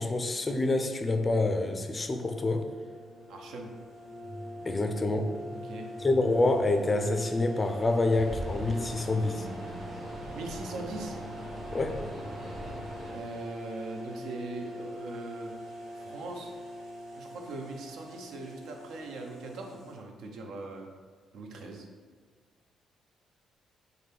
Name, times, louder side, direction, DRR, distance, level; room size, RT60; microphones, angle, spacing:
voice 1, 0.0-2.6 4.7-5.3 6.0-9.5 11.7-12.0, left 2 dB, 30° left, 5 dB, 0.4 m, -27 dB
sound 1, 2.1-19.9, equal, 85° right, 0.8 m, -43 dB
voice 2, 3.3-3.7 5.6-5.9 10.3-11.2 13.1-15.5 16.0-16.5 17.2-20.9 21.3-21.9, right 2 dB, 70° right, 2 dB, 0.4 m, -40 dB
sound 2, 4.2-7.4 8.5-11.4, equal, 20° right, 0.7 m, -49 dB
sound 3, 8.1-13.1, equal, 40° right, 1.1 m, -40 dB
3.6 x 2.2 x 3.3 m, 1.5 s
hypercardioid pair, 45°, 0 cm